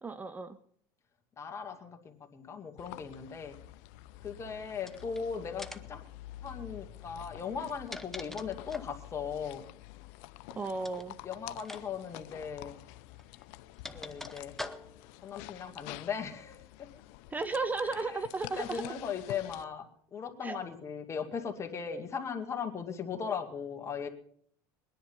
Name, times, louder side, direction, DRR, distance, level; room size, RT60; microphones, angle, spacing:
voice 1, 0.0-0.6 10.6-11.1 17.3-18.8 20.4-20.6, right 3 dB, 15° right, 15 dB, 0.6 m, -34 dB
voice 2, 1.4-3.6 4.2-6.1 6.4-9.6 10.9-12.8 13.9-14.6 15.2-16.9 17.8-18.2 18.6-19.9 20.1-24.1, left 6 dB, 30° left, 4 dB, 2.2 m, -38 dB
sound 1, 2.8-19.7, left 16 dB, 75° left, 0.7 m, -49 dB
sound 2, 4.8-5.2 5.6-6.0 7.5-9.0 10.8-11.1 11.6-11.8 12.1-12.2 13.2-15.1, left 2 dB, 5° left, 1.0 m, -44 dB
21.5 x 10.5 x 5.5 m, 0.64 s
supercardioid pair, 115°, 10 cm